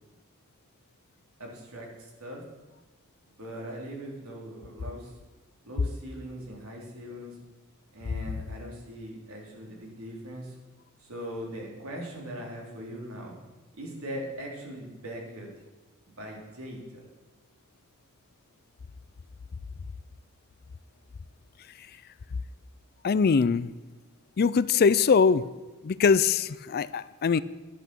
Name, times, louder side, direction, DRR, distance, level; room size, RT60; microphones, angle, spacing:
voice 1, 1.4-2.4 3.4-5.2 5.7-7.4 7.9-10.6 11.0-13.4 13.7-15.5 16.1-17.1, equal, 70° right, -1 dB, 3.5 m, -40 dB
voice 2, 23.0-23.7 24.4-25.4 25.8-27.4, left 5 dB, 45° left, 17 dB, 0.4 m, -22 dB
11.0 x 10.5 x 6.2 m, 1.2 s
head